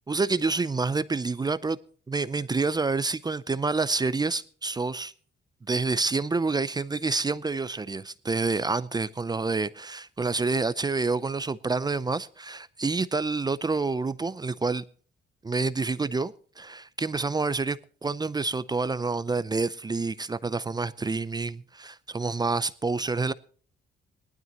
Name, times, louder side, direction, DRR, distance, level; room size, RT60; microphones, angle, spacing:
voice 1, 0.1-1.8 2.1-5.1 5.7-14.8 15.4-23.3, right 3 dB, 20° right, 0.6 m, -28 dB
19.0 x 12.5 x 3.0 m
cardioid pair, 90°, 20 cm